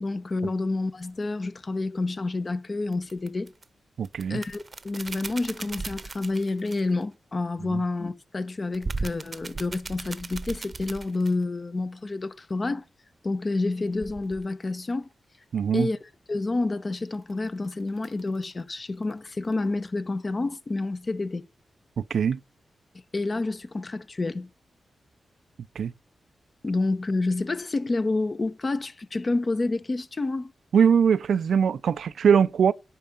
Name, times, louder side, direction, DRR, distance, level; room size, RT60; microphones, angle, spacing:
voice 1, 0.0-3.5 4.3-12.8 13.2-15.1 15.7-16.0 16.3-21.5 23.1-24.5 26.6-30.5, left 3 dB, 40° left, 0.8 m, -29 dB
sound 1, 1.0-1.2 2.9-3.6 4.0-7.0 8.7-11.4 13.9-14.5 17.0-18.6 19.0-19.1 19.4-19.7, right 3 dB, 40° right, 0.7 m, -37 dB
voice 2, 4.0-4.4 7.7-7.8 15.5-15.9 22.0-22.4 25.8-25.9 30.7-32.7, right 7 dB, 80° right, 0.3 m, -21 dB
10.0 x 4.6 x 5.2 m
cardioid pair, 55°, 0 cm